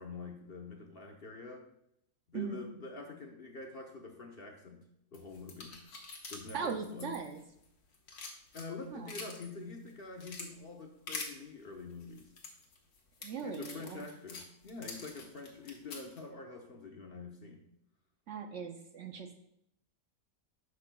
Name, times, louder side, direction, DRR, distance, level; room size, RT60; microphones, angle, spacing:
voice 1, 0.0-1.6 2.3-4.8 5.1-5.8 6.3-7.2 8.5-12.3 13.4-17.6, left 4 dB, 45° left, 2 dB, 0.9 m, -46 dB
Shells and Nails, 5.1-7.6 7.9-9.5 9.9-10.5 11.1-11.3 12.0-16.2, left 4 dB, 85° left, 1.7 m, -45 dB
voice 2, 6.5-7.4 8.9-9.2 13.2-14.1 18.3-19.3, right 6 dB, 65° right, 5 dB, 0.8 m, -39 dB
10.5 x 6.5 x 2.2 m, 0.75 s
omnidirectional pair, 1.6 m